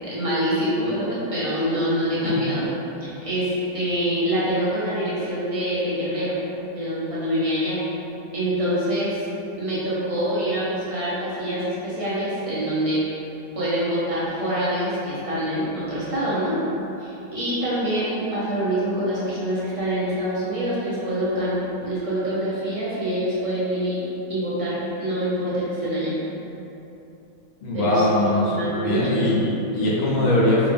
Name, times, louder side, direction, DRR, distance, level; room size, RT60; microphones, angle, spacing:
voice 1, 0.1-2.6 3.0-6.4 6.7-7.8 8.3-9.2 9.6-13.0 13.5-16.6 17.0-26.2 27.7-29.3 29.6-29.9, equal, 25° right, -11 dB, 0.8 m, -25 dB
voice 2, 27.6-30.7, left 1 dB, 90° left, -7 dB, 1.6 m, -22 dB
4.8 x 2.7 x 3.5 m, 2.9 s
omnidirectional pair, 2.1 m